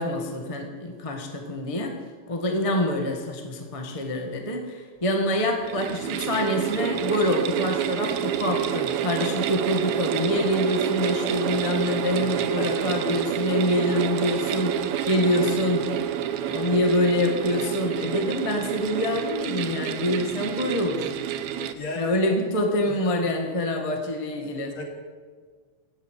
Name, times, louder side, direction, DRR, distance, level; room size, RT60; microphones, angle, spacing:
voice 1, 0.0-1.9 2.3-14.8 15.1-15.9 16.5-21.1 21.9-24.7, left 1 dB, 20° left, 3 dB, 1.0 m, -26 dB
sound 1, 5.5-21.7, right 10 dB, 70° right, 1.9 m, -28 dB
voice 2, 12.6-12.9 16.5-16.6 21.6-22.1 22.9-23.0 24.8-24.9, left 1 dB, 60° left, 1 dB, 3.6 m, -36 dB
16.5 x 8.0 x 9.2 m, 1.5 s
omnidirectional pair, 3.5 m